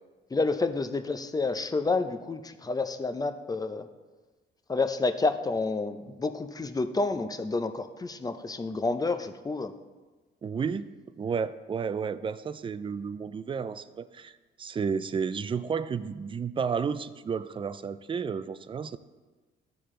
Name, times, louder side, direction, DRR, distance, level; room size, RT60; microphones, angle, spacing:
voice 1, 0.3-3.9 4.7-9.7, left 3 dB, 20° left, 9 dB, 0.6 m, -29 dB
voice 2, 10.4-10.9 11.2-14.3 14.6-19.0, right 6 dB, 25° right, 14 dB, 0.4 m, -32 dB
13.5 x 4.6 x 3.7 m, 1.3 s
cardioid pair, 90°, 20 cm